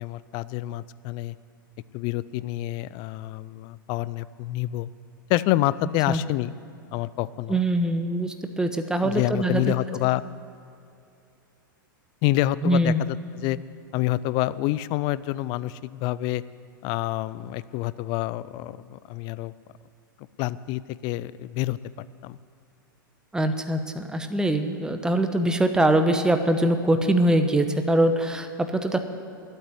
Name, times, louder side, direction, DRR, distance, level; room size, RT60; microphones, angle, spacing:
voice 1, 0.0-1.3 1.9-4.9 5.3-6.5 6.9-7.6 9.0-10.2 12.2-12.9 13.4-13.6 13.9-16.4 16.8-19.5 20.4-21.8 22.2-22.4, left 16 dB, 45° left, 18 dB, 0.4 m, -27 dB
voice 2, 7.5-9.7 12.6-13.0 23.3-29.0, right 1 dB, 5° right, 7 dB, 0.9 m, -23 dB
12.0 x 8.7 x 9.6 m, 2.7 s
hypercardioid pair, 105°, 11 cm